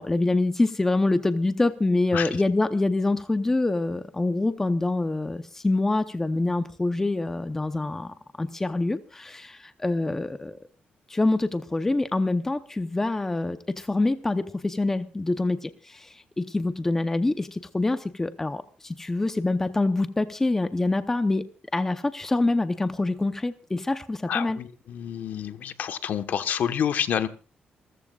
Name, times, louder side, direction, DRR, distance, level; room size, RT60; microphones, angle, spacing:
voice 1, 0.0-10.6 11.1-21.4 21.7-24.6, left 2 dB, 10° left, 10 dB, 0.7 m, -25 dB
voice 2, 24.3-27.3, left 8 dB, 60° left, 10 dB, 1.2 m, -28 dB
28.5 x 14.5 x 2.4 m, 0.33 s
wide cardioid pair, 175°, 3 cm